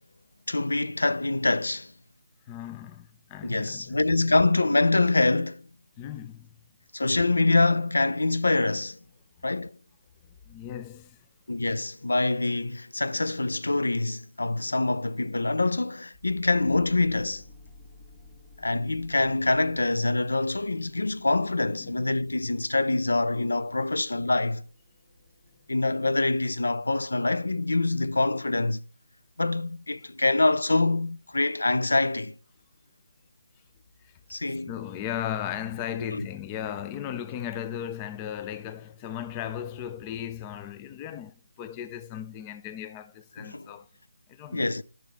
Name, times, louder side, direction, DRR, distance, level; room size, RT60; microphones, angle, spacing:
voice 1, 0.5-1.9 3.4-5.6 6.9-9.0 9.4-9.8 11.5-17.4 18.6-24.6 25.7-28.8 29.4-32.4 34.3-34.7 36.0-36.3 43.4-43.7 44.5-44.8, left 2 dB, 75° left, 0.4 m, -25 dB
voice 2, 2.5-4.0 6.0-6.6 10.3-11.3 21.8-22.2 34.0-43.9 44.3-44.7, left 10 dB, 15° left, 0.4 m, -37 dB
sound 1, 16.1-28.1, left 2 dB, 35° left, 1.3 m, -56 dB
9.8 x 6.2 x 3.5 m
figure-of-eight pair, 160°, 0 cm